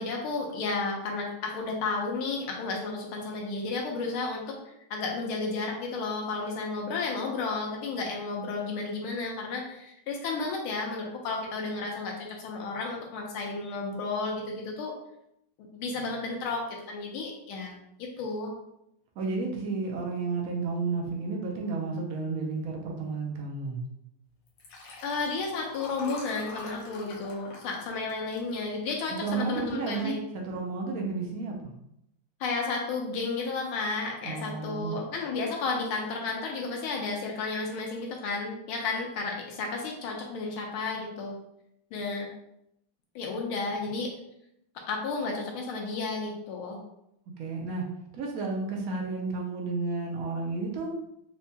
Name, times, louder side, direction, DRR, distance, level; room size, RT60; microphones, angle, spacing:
voice 1, 0.0-4.6 4.9-14.9 15.7-18.5 25.0-30.2 32.4-41.3 41.9-42.3 43.1-44.1 44.9-46.8, left 3 dB, 85° left, 0 dB, 1.5 m, -32 dB
voice 2, 19.2-23.8 29.1-31.7 34.2-35.0 47.4-47.9 48.1-51.0, right 3 dB, 80° right, 0 dB, 0.8 m, -32 dB
Liquid, 24.5-29.1 29.6-29.9 30.1-30.2, left 3 dB, 70° left, 1.3 m, -45 dB
4.5 x 2.2 x 2.7 m, 0.78 s
omnidirectional pair, 2.3 m